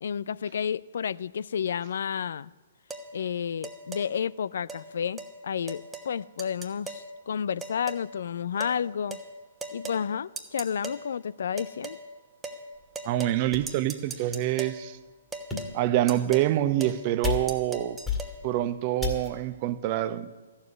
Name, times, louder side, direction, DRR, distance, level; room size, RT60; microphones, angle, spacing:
voice 1, 0.0-2.5 3.1-9.2 9.7-12.0, left 7 dB, 65° left, 0.3 m, -31 dB
sound 1, 2.9-3.1 3.6-4.1 4.7-4.8 5.2-5.3 5.7-6.1 6.4-7.1 7.6-8.1 8.6-8.8 9.1-9.3 9.6-10.0 10.4-11.0 11.6-12.0 12.4-12.6 12.9-13.4 13.7-14.8 15.3-15.7 16.1-16.5 16.8-17.0 17.2-18.3, right 3 dB, 10° right, 1.1 m, -38 dB
sound 2, 12.8-12.9 13.5-13.9 14.5-14.6 15.3-15.9 16.6-16.9 17.2-17.7 18.0-18.6 19.0-19.5, left 6 dB, 10° left, 2.0 m, -33 dB
voice 2, 13.0-15.0 15.7-18.0 18.4-20.5, right 13 dB, 40° right, 0.7 m, -26 dB
13.5 x 7.2 x 9.5 m
figure-of-eight pair, 125°, 0 cm